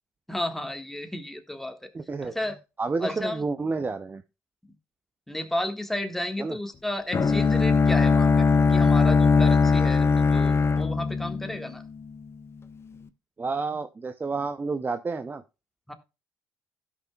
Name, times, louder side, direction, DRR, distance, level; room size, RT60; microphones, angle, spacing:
voice 1, 0.3-1.9 2.2-2.6 3.0-3.4 5.3-11.8 15.9-16.0, left 1 dB, 5° left, 5 dB, 1.6 m, -33 dB
voice 2, 1.9-2.3 2.8-4.2 6.4-6.6 13.4-15.4, right 4 dB, 25° right, 10 dB, 0.6 m, -30 dB
Bowed string instrument, 7.1-12.1, left 5 dB, 35° left, 0.8 m, -20 dB
16.0 x 5.9 x 2.3 m, 0.28 s
hypercardioid pair, 55°, 8 cm